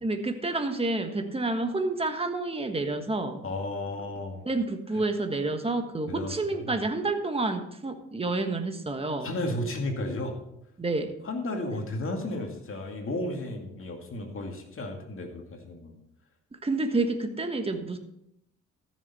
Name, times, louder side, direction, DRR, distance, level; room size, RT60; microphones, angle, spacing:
voice 1, 0.0-3.4 4.4-9.3 10.8-11.1 16.6-18.0, right 2 dB, 20° right, 6 dB, 1.4 m, -29 dB
voice 2, 3.4-4.4 6.1-6.8 9.2-10.4 11.2-16.0, left 1 dB, 45° left, 3 dB, 2.3 m, -33 dB
14.0 x 6.7 x 4.3 m, 0.78 s
cardioid pair, 90°, 30 cm